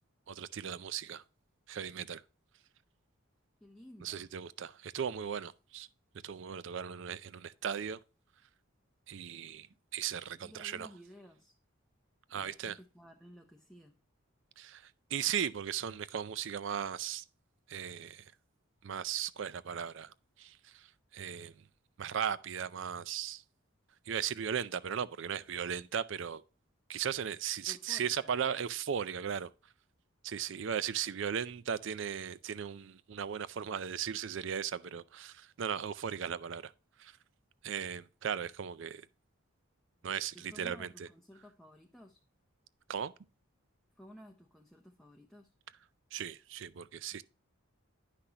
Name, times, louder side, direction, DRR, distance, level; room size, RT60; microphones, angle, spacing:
voice 1, 0.3-1.2 1.7-2.2 4.0-5.9 6.2-8.0 9.1-9.7 9.9-10.9 12.3-12.8 14.6-17.2 17.7-18.3 18.8-21.6 22.0-23.4 24.1-26.4 26.9-29.5 30.2-36.7 37.0-37.2 37.6-39.1 40.0-41.1 42.9-43.1 46.1-47.2, right 8 dB, 60° right, 0.4 m, -37 dB
voice 2, 3.6-4.3 10.4-11.6 12.3-14.0 27.7-28.6 40.3-42.2 43.9-45.5, equal, ahead, 0.6 m, -55 dB
9.9 x 5.8 x 2.8 m
head